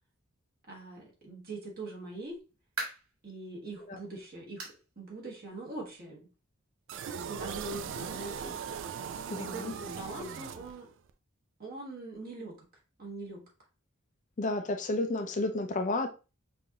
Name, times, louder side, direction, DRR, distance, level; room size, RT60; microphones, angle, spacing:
voice 1, 0.7-2.4 3.2-4.6 5.0-6.3 7.1-8.6 9.4-10.9 11.6-12.6 13.0-13.5, right 2 dB, 45° right, 1.5 m, -42 dB
sound 1, 2.4-3.2 3.7-3.8 4.6-4.9 5.2-5.3 5.8-5.9 7.0-7.1, right 3 dB, 85° right, 1.5 m, -40 dB
sound 2, 6.9-11.1, right 7 dB, 60° right, 0.3 m, -39 dB
voice 2, 9.3-9.7 14.4-16.1, left 2 dB, 35° left, 0.4 m, -31 dB
5.4 x 2.6 x 2.8 m
head